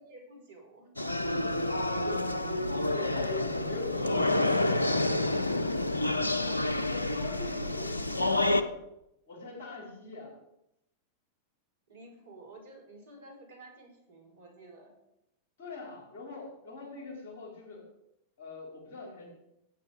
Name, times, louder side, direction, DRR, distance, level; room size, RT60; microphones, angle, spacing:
voice 1, 0.1-0.9 11.9-14.9, right 1 dB, 65° right, 2 dB, 4.7 m, -51 dB
sound 1, 1.0-8.6, left 2 dB, 85° left, 0.7 m, -29 dB
voice 2, 1.2-4.6 6.9-8.7 9.3-10.3 15.6-17.9 18.4-19.3, left 3 dB, 55° left, 0 dB, 4.8 m, -41 dB
15.5 x 8.6 x 5.1 m, 0.84 s
figure-of-eight pair, 90°, 0 cm